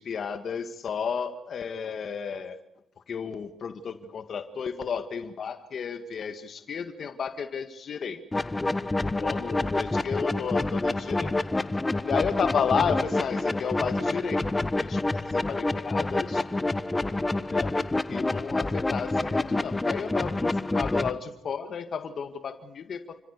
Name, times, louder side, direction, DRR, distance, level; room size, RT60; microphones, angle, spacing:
voice 1, 0.0-2.6 3.1-8.4 9.0-11.3 12.0-15.0 15.3-16.4 17.5-17.8 18.1-23.2, left 6 dB, 55° left, 9 dB, 1.8 m, -32 dB
sound 1, 8.3-21.1, left 2 dB, 15° left, 1.3 m, -28 dB
29.5 x 15.0 x 8.2 m, 0.88 s
cardioid pair, 90°, 0 cm